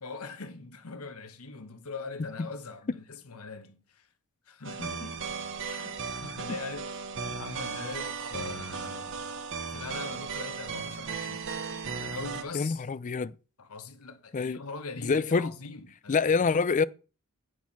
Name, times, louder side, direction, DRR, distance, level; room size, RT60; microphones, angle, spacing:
voice 1, 0.0-4.1 4.5-5.2 5.6-7.0 7.3-9.1 9.7-11.5 12.0-12.8 13.6-16.6, left 4 dB, 75° left, 1.2 m, -42 dB
sound 1, 4.6-12.4, right 5 dB, 60° right, 1.2 m, -36 dB
voice 2, 12.5-13.4 14.3-14.6 15.0-15.5 16.1-16.8, left 5 dB, 35° left, 0.4 m, -26 dB
10.5 x 4.7 x 5.9 m
head